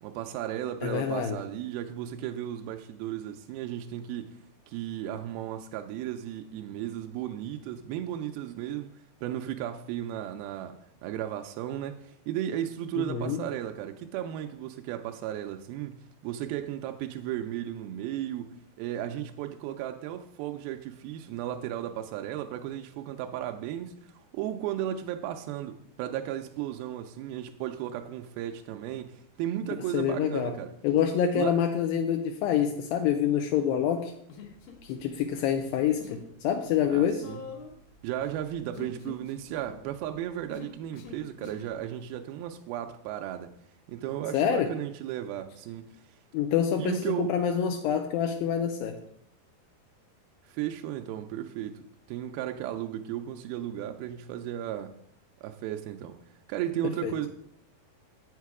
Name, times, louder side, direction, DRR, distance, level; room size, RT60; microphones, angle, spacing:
voice 1, 0.0-30.7 31.3-31.6 36.9-37.4 38.0-43.5 43.9-46.0 46.8-47.4 50.4-55.0 55.4-56.2 56.5-57.3, right 11 dB, 85° right, 2.2 m, -35 dB
voice 2, 0.8-1.4 13.0-13.4 29.9-30.5 30.8-34.1 34.8-37.2 44.3-44.7 46.3-49.0 57.0-57.1, left 8 dB, 85° left, 2.1 m, -27 dB
Human voice, 34.3-35.2 35.5-36.3 36.5-41.7, left 5 dB, 65° left, 2.6 m, -46 dB
8.3 x 6.5 x 4.7 m
omnidirectional pair, 4.8 m